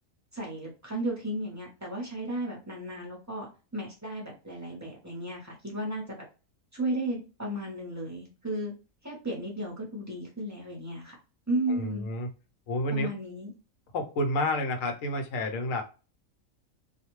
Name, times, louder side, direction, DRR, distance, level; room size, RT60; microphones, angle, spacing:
voice 1, 0.3-6.2 6.7-8.7 9.0-11.1 11.5-12.1 12.9-13.5, right 1 dB, 15° right, -3 dB, 0.6 m, -34 dB
voice 2, 11.7-12.3 12.7-13.1 13.9-15.8, left 1 dB, 75° left, 5 dB, 1.0 m, -30 dB
2.4 x 2.1 x 3.0 m, 0.32 s
omnidirectional pair, 1.4 m